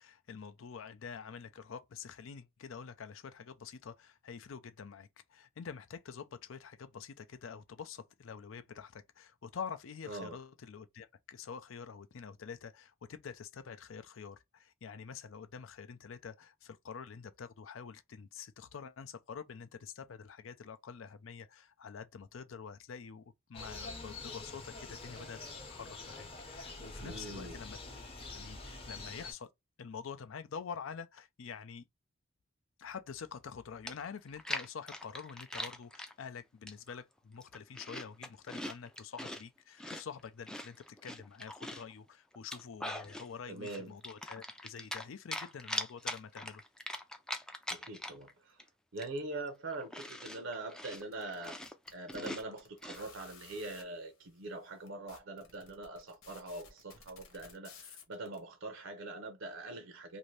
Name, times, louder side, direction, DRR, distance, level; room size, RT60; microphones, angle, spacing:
voice 1, 0.0-25.4 25.7-27.8 28.3-29.5 29.8-31.8 32.8-46.6, left 6 dB, 70° left, 0.5 m, -47 dB
voice 2, 10.1-10.4 27.0-27.6 43.5-43.9 47.7-48.6 48.9-51.6 51.9-60.2, right 2 dB, 65° right, 0.6 m, -43 dB
sound 1, 23.5-29.3, left 3 dB, 30° left, 0.8 m, -46 dB
Chewing mastication, 33.9-36.1 36.7-37.0 37.4-39.4 39.8-41.9 42.3-43.3 43.6-45.1 45.3-48.3 48.6-48.7 49.0-53.0, left 1 dB, 5° left, 0.3 m, -42 dB
sound 2, 51.0-53.8 54.5-54.6 54.9-58.4, left 6 dB, 90° left, 1.1 m, -55 dB
2.7 x 2.6 x 3.1 m
head